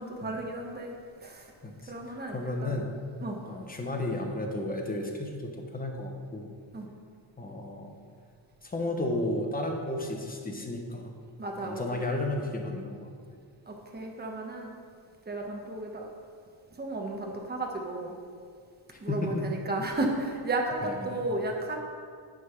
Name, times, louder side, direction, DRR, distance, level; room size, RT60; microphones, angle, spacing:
voice 1, 0.0-1.5 1.9-2.7 3.2-3.4 6.7-6.9 11.4-12.0 13.7-14.7 15.3-16.1 16.7-18.1 19.0-21.8, right 2 dB, 20° right, 1 dB, 1.0 m, -33 dB
voice 2, 1.6-3.0 3.4-6.5 7.4-7.9 8.6-11.1 11.6-13.1 18.9-19.6 20.8-21.0, left 1 dB, 20° left, 2 dB, 1.0 m, -33 dB
9.3 x 3.8 x 5.8 m, 2.1 s
cardioid pair, 115°, 48 cm